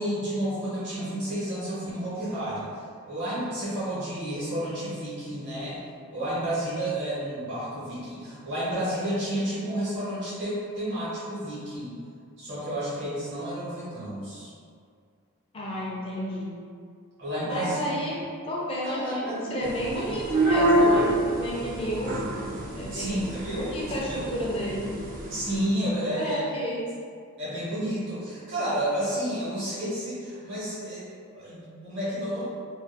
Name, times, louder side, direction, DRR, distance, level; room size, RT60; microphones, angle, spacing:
voice 1, 0.0-2.7 3.0-5.8 6.1-12.0 12.4-14.5 17.2-17.9 18.8-19.6 22.9-23.7 23.9-24.2 25.3-26.4 27.4-31.1 31.3-32.5, right 1 dB, 55° right, -10 dB, 1.0 m, -31 dB
voice 2, 15.5-16.5 17.4-18.2 18.5-22.2 22.7-24.9 26.0-26.8, equal, 25° left, -5 dB, 0.4 m, -32 dB
sound 1, 19.6-25.6, right 1 dB, 40° right, 0.4 m, -27 dB
2.4 x 2.3 x 2.5 m, 2.2 s
head